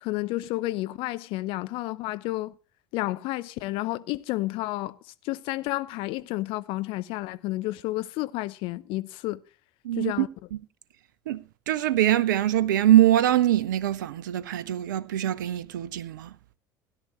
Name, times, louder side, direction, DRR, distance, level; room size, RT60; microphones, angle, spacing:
voice 1, 0.0-2.5 2.9-5.0 5.2-9.4 10.0-10.3, left 18 dB, 55° left, 0.7 m, -31 dB
voice 2, 9.8-10.3 11.3-16.3, right 12 dB, 75° right, 0.5 m, -23 dB
17.0 x 11.0 x 3.1 m
figure-of-eight pair, 65°, 10 cm